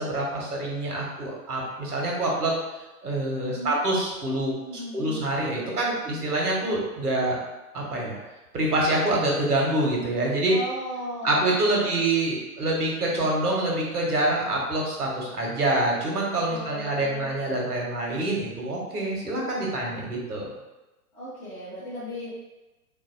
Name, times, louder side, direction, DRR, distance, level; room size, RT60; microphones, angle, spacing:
voice 1, 0.0-2.5 3.0-4.5 4.9-7.4 7.7-8.2 8.5-10.5 11.2-20.5, right 1 dB, 75° right, -2 dB, 1.2 m, -26 dB
voice 2, 3.4-3.8 4.6-5.2 10.5-12.0 16.5-17.3 21.1-22.3, equal, 5° left, -12 dB, 0.6 m, -36 dB
3.7 x 2.6 x 2.6 m, 1.1 s
figure-of-eight pair, 120°, 46 cm